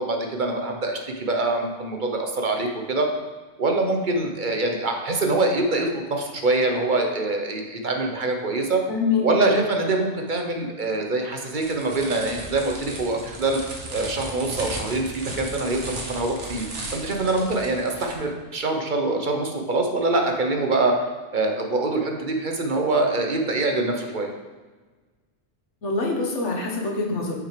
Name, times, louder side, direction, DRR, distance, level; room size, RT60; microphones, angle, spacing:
voice 1, 0.0-3.1 3.6-8.8 9.2-16.6 16.9-20.9 21.3-24.3, right 2 dB, 45° right, 2 dB, 1.0 m, -24 dB
voice 2, 8.9-9.6 25.8-27.4, left 3 dB, 85° left, 0 dB, 1.7 m, -25 dB
sound 1, 11.5-18.1, right 2 dB, 85° right, 1.6 m, -36 dB
6.2 x 5.9 x 5.0 m, 1.3 s
omnidirectional pair, 1.2 m